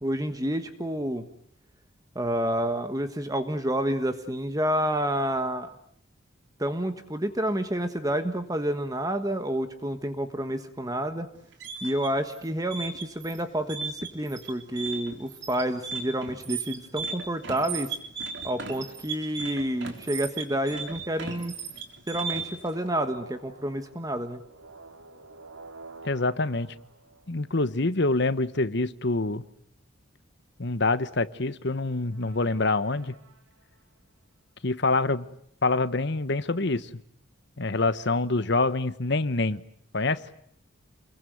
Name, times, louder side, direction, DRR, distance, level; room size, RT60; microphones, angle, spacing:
voice 1, 0.0-1.3 2.1-5.7 6.6-11.3 11.8-17.9 18.4-21.5 22.1-24.4, right 1 dB, 15° right, 9 dB, 1.4 m, -29 dB
sound 1, 11.4-22.7, right 5 dB, 60° right, 3.6 m, -36 dB
sound 2, 22.4-27.8 32.1-33.8, right 3 dB, 85° right, 2.3 m, -49 dB
voice 2, 26.0-26.7 27.3-29.4 30.6-33.1 34.6-35.2 35.6-36.9 37.6-39.6 39.9-40.2, left 3 dB, 55° left, 13 dB, 1.2 m, -26 dB
28.5 x 22.5 x 9.4 m, 0.67 s
head